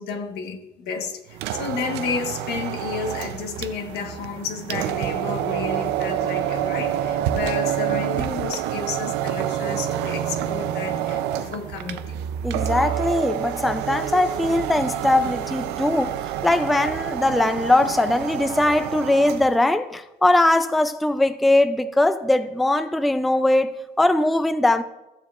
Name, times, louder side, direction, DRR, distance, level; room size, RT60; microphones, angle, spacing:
voice 1, 0.0-12.2, left 5 dB, 75° left, 1.2 m, -31 dB
sound 1, 1.3-19.6, right 11 dB, 90° right, 0.5 m, -28 dB
voice 2, 12.4-23.7 24.0-24.8, left 2 dB, ahead, 0.3 m, -20 dB
14.0 x 7.2 x 2.4 m
cardioid pair, 110°, 17 cm